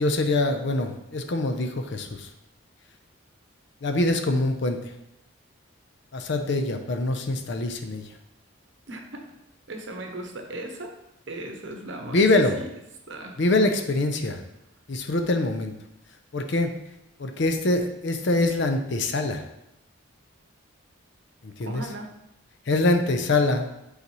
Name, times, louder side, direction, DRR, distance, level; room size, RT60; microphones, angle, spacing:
voice 1, 0.0-2.3 3.8-4.8 6.1-8.0 12.1-12.6 13.4-14.4 14.9-15.7 16.3-16.7 17.2-19.4 21.4-21.8 22.7-23.7, left 2 dB, 55° left, 6 dB, 0.6 m, -24 dB
voice 2, 8.9-9.2 9.7-10.9 11.3-12.3 12.6-12.7 13.1-13.4 21.6-22.1, right 1 dB, 55° right, 3 dB, 0.9 m, -37 dB
8.3 x 4.0 x 3.0 m, 0.87 s
head